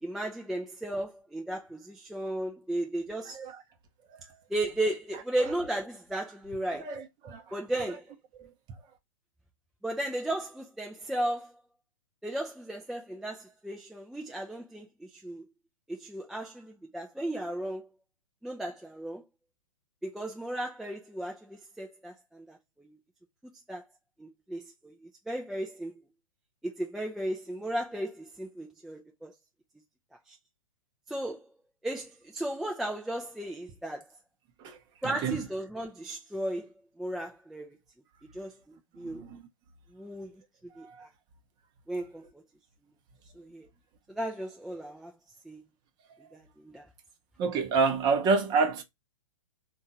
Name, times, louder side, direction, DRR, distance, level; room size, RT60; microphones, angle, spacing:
voice 1, 0.0-3.4 4.5-6.9 7.5-8.1 9.8-11.5 12.2-15.4 15.9-17.9 18.4-19.2 20.0-23.0 23.7-23.8 24.2-25.9 26.6-29.3 30.3-30.4 31.1-31.5 31.8-34.1 35.0-36.7 37.0-37.8 38.3-39.2 39.9-40.4 40.8-41.1 41.9-42.3 43.4-43.7 44.1-45.1 45.4-45.6 46.3-46.9, right 1 dB, ahead, 0.3 m, -35 dB
voice 2, 6.8-7.5 8.4-8.5 34.6-34.8 35.0-35.4 39.1-39.4 40.8-41.1 47.4-48.8, right 4 dB, 25° right, 0.7 m, -28 dB
3.6 x 2.3 x 4.0 m
figure-of-eight pair, 120°, 17 cm